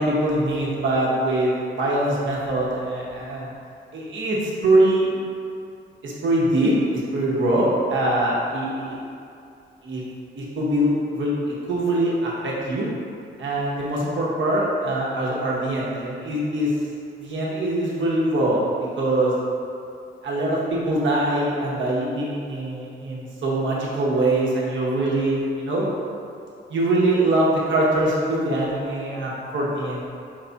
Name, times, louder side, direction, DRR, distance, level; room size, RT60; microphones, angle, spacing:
voice 1, 0.0-3.5 3.9-5.1 6.0-8.9 9.8-10.0 10.3-11.3 11.7-12.9 13.4-16.7 17.2-18.7 19.0-19.3 20.2-25.9 26.7-30.1, right 1 dB, 65° right, -5 dB, 1.0 m, -23 dB
4.6 x 2.3 x 4.0 m, 2.5 s
wide cardioid pair, 135°, 21 cm